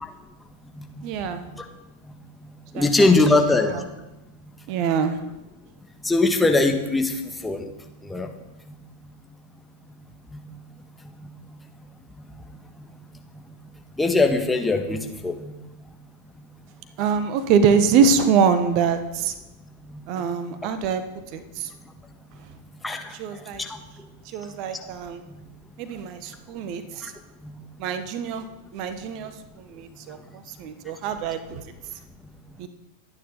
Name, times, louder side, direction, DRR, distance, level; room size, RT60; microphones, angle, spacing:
voice 1, 1.0-1.4 2.7-3.2 3.7-3.8 4.7-5.2 17.0-19.3 20.1-21.0 21.3-21.7 23.2-23.6 24.2-25.2 25.8-27.1 27.8-28.4 28.7-29.3 29.6-31.6 32.6-32.7, right 6 dB, 40° right, 10 dB, 1.5 m, -24 dB
voice 2, 2.8-3.7 6.1-7.1 7.4-7.6 8.1-8.3 14.0-15.3 22.8-23.0, left 2 dB, 5° left, 4 dB, 1.9 m, -20 dB
26.0 x 9.8 x 4.1 m, 1.0 s
figure-of-eight pair, 90°, 0 cm